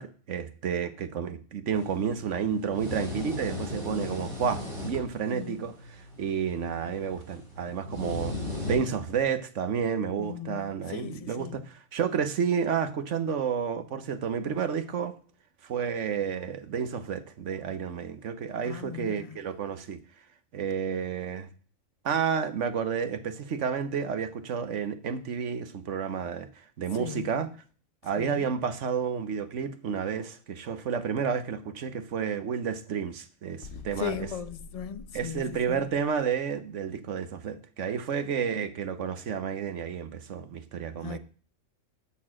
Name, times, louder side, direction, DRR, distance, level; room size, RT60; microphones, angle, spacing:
voice 1, 0.0-8.4 8.7-15.1 15.6-20.0 20.5-21.5 22.0-26.5 26.8-27.5 28.0-34.3 35.1-41.2, right 7 dB, 65° right, 1.2 m, -31 dB
sound 1, 1.7-9.2, left 2 dB, 35° right, 3.0 m, -38 dB
voice 2, 3.9-4.3 5.3-5.6 10.2-11.6 18.6-19.4 26.9-27.3 28.2-28.5 34.0-35.9 41.0-41.2, left 8 dB, 45° left, 0.4 m, -38 dB
sound 2, 33.6-36.3, left 5 dB, 80° left, 1.3 m, -46 dB
11.0 x 4.4 x 7.4 m
omnidirectional pair, 1.4 m